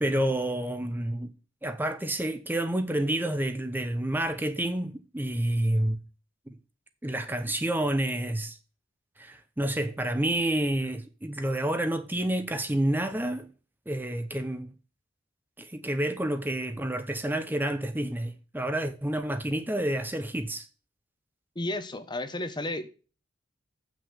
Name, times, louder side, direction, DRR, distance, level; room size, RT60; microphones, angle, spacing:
voice 1, 0.0-1.3 1.6-6.0 6.5-6.6 7.0-8.6 9.2-13.5 13.9-14.7 15.6-20.7, right 1 dB, 10° right, 0.7 m, -29 dB
voice 2, 21.6-22.9, left 1 dB, 25° left, 0.9 m, -32 dB
7.8 x 6.0 x 6.9 m
head